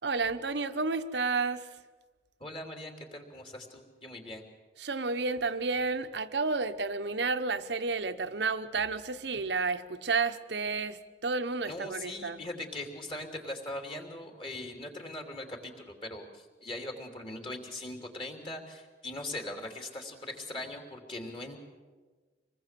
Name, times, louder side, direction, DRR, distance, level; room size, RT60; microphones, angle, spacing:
voice 1, 0.0-1.6 4.8-12.4, right 4 dB, 75° right, 10 dB, 1.0 m, -31 dB
voice 2, 2.4-4.4 11.6-21.6, left 1 dB, 30° left, 3 dB, 3.2 m, -40 dB
26.0 x 20.0 x 7.6 m, 1.4 s
head